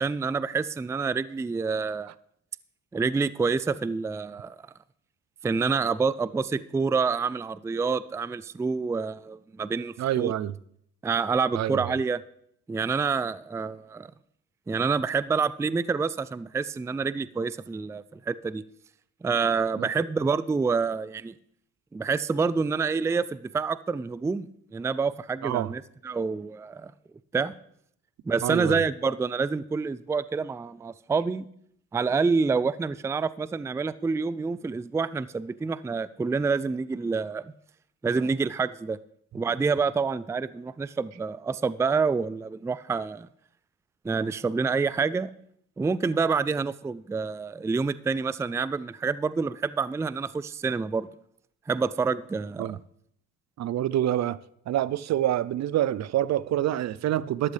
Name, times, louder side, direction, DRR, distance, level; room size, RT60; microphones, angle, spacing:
voice 1, 0.0-2.1 2.9-4.6 5.4-10.3 11.0-12.2 12.7-14.1 14.7-18.6 19.2-21.3 21.9-26.9 27.3-27.5 28.3-31.5 31.9-37.5 38.0-39.0 39.3-43.3 44.0-45.3 45.8-51.1 51.7-52.7, right 4 dB, 10° right, 0.3 m, -27 dB
voice 2, 10.0-10.5 11.5-11.9 19.8-19.9 25.4-25.7 28.4-28.8 52.6-52.8 53.6-54.4 54.7-57.5, right 12 dB, 60° right, 0.5 m, -26 dB
13.0 x 12.0 x 3.3 m
cardioid pair, 90°, 30 cm